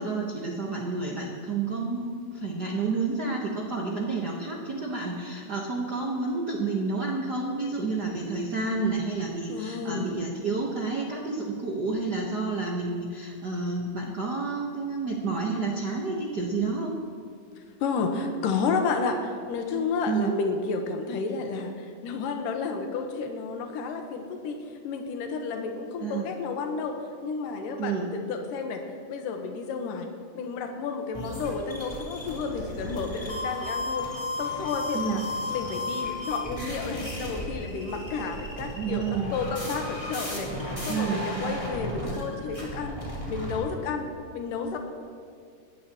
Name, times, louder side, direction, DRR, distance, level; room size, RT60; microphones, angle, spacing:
voice 1, 0.0-17.0 20.1-20.3 26.0-26.3 27.8-28.1 34.9-35.3 38.8-39.3 40.9-41.6, right 4 dB, 85° right, -2 dB, 0.9 m, -30 dB
voice 2, 9.5-10.2 17.8-27.0 27.2-28.8 29.1-30.1 30.3-34.1 34.4-35.2 35.5-39.0 39.3-43.0 43.3-44.8, left 4 dB, 80° left, 4 dB, 2.7 m, -31 dB
sound 1, 31.1-43.6, left 1 dB, 10° left, 3.4 m, -34 dB
21.0 x 14.5 x 3.0 m, 2.2 s
omnidirectional pair, 3.8 m